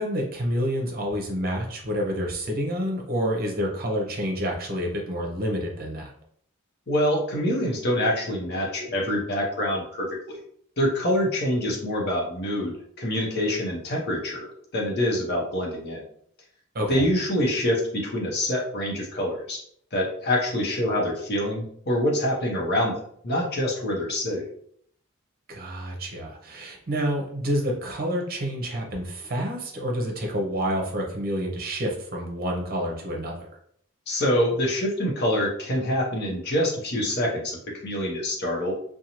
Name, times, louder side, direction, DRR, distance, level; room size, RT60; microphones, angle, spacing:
voice 1, 0.0-6.1 16.7-17.0 25.5-33.4, equal, 45° right, 0 dB, 0.7 m, -28 dB
voice 2, 6.9-10.4 10.8-16.0 16.9-19.6 19.9-24.4 34.1-38.7, left 1 dB, 50° left, -2 dB, 0.8 m, -26 dB
2.6 x 2.2 x 2.9 m, 0.65 s
head